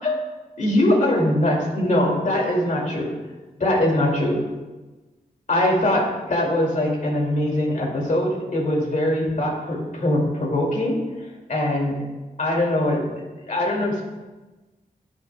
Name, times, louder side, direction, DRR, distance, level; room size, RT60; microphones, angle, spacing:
voice 1, 0.6-3.1 3.6-4.4 5.5-11.0 11.5-11.9 12.4-13.0 13.5-14.0, left 1 dB, 55° left, -2 dB, 2.7 m, -22 dB
15.0 x 6.1 x 2.4 m, 1.2 s
wide cardioid pair, 95°, 15 cm